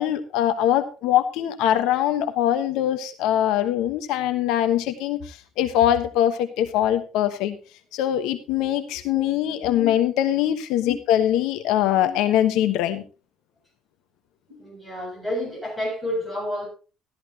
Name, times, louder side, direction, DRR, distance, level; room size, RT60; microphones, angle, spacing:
voice 1, 0.0-7.6 7.9-13.0, left 11 dB, 70° left, 1.2 m, -22 dB
voice 2, 8.9-9.3 9.6-9.9 10.8-10.9 12.0-12.2 14.5-16.7, left 1 dB, ahead, 7.5 m, -31 dB
13.5 x 13.5 x 2.9 m
cardioid pair, 175°, 0 cm